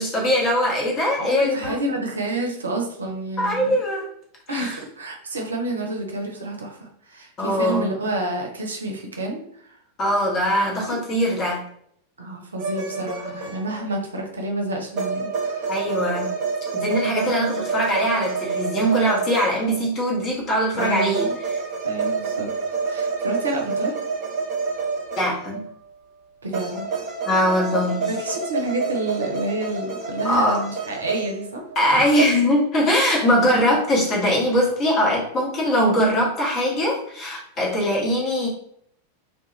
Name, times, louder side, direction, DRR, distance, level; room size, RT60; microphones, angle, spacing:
voice 1, 0.0-1.7 3.4-4.1 4.5-4.8 7.4-7.9 10.0-11.6 15.7-16.3 16.7-21.6 25.2-25.6 27.2-28.1 30.2-30.6 31.7-38.5, equal, 30° left, -2 dB, 1.0 m, -21 dB
voice 2, 1.2-3.7 4.5-9.8 10.9-11.0 12.2-15.7 17.0-17.1 20.7-21.4 21.8-22.5 22.8-23.9 26.4-27.0 28.1-31.6 31.9-32.1, right 1 dB, 70° right, 1 dB, 0.5 m, -29 dB
sound 1, 12.6-14.0 14.9-19.9 20.8-25.7 26.5-31.8 32.2-32.3, right 5 dB, 40° right, 0.8 m, -28 dB
2.3 x 2.1 x 2.9 m, 0.67 s
figure-of-eight pair, 90°, 0 cm